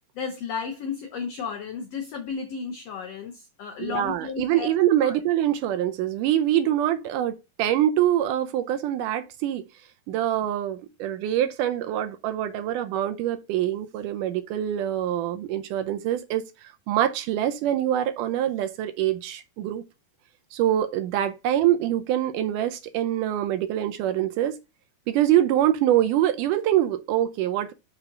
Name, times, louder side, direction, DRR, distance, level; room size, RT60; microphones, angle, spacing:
voice 1, 0.1-4.7 5.0-5.2, left 6 dB, 90° left, 1.4 m, -33 dB
voice 2, 3.8-9.6 10.1-19.8 20.5-24.6 25.1-27.7, right 12 dB, 80° right, 2.0 m, -24 dB
5.6 x 3.9 x 5.7 m
omnidirectional pair, 4.0 m